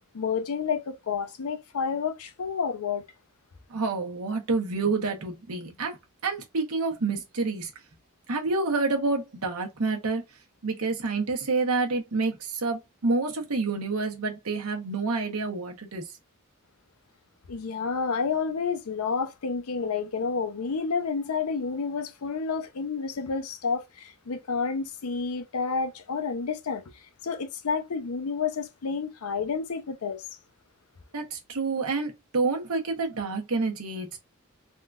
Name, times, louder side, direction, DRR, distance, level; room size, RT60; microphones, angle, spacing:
voice 1, 0.1-3.0 17.5-26.8 27.2-30.2, left 5 dB, 80° left, 0.6 m, -30 dB
voice 2, 3.7-6.0 6.2-7.7 8.3-10.2 10.6-16.0 31.1-34.2, right 3 dB, 85° right, 0.9 m, -28 dB
3.6 x 2.3 x 2.4 m
head